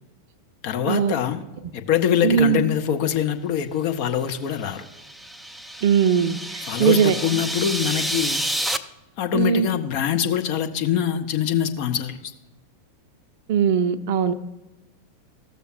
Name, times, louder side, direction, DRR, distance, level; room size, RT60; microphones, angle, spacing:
voice 1, 0.6-1.4 1.7-4.8 6.7-8.4 9.2-12.3, left 9 dB, 45° left, 6 dB, 0.7 m, -24 dB
voice 2, 2.2-2.6 5.8-7.2 9.3-9.7 13.5-14.3, right 8 dB, 50° right, 11 dB, 0.6 m, -20 dB
sound 1, 4.6-8.8, right 1 dB, 5° right, 0.4 m, -29 dB
14.0 x 6.7 x 2.5 m, 1.0 s
figure-of-eight pair, 90°, 0 cm